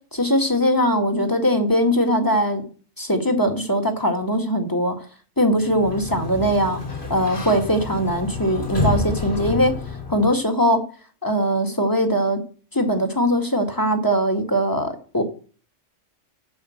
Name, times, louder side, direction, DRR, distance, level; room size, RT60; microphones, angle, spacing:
voice 1, 0.1-2.6 3.0-4.9 5.4-6.8 7.1-9.7 10.1-10.8 11.2-12.4 12.7-15.2, equal, 15° left, 3 dB, 2.0 m, -21 dB
Sliding door, 5.5-10.4, left 3 dB, 50° left, 3.4 m, -29 dB
14.5 x 5.4 x 6.5 m, 0.41 s
omnidirectional pair, 1.3 m